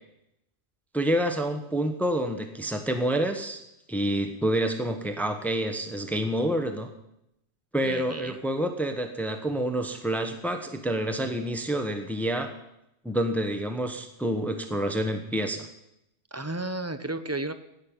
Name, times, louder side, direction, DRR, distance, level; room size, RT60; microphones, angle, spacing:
voice 1, 0.9-3.6 3.9-6.9 7.7-12.5 13.0-15.7, right 1 dB, ahead, 6 dB, 1.1 m, -28 dB
voice 2, 7.8-8.4 16.3-17.5, right 2 dB, 15° right, 11 dB, 0.7 m, -33 dB
17.5 x 6.5 x 8.9 m, 0.83 s
omnidirectional pair, 1.1 m